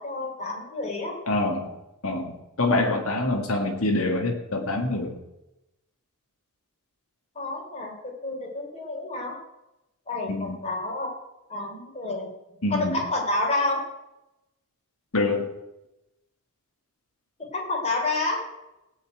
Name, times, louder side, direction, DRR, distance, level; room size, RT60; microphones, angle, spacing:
voice 1, 0.0-1.2 7.4-7.9 8.2-9.4 10.1-11.1 11.5-12.3 12.7-13.8 17.5-18.5, left 2 dB, 30° left, -1 dB, 4.0 m, -29 dB
voice 2, 1.3-1.7 2.0-5.1 10.3-10.6 12.6-13.0 15.1-15.5, left 2 dB, 70° left, 1 dB, 1.9 m, -25 dB
17.0 x 5.7 x 9.2 m, 0.93 s
head